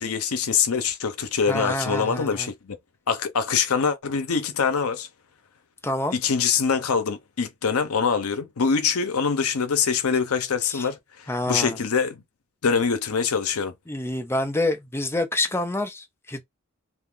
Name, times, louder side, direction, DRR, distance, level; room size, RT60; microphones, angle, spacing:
voice 1, 0.0-2.8 3.1-5.1 6.1-12.2 12.6-13.7, left 6 dB, 80° left, 0.7 m, -24 dB
voice 2, 1.4-2.5 5.8-6.2 10.6-10.9 11.3-11.8 13.9-16.4, left 1 dB, 10° left, 0.6 m, -27 dB
2.6 x 2.4 x 3.6 m
head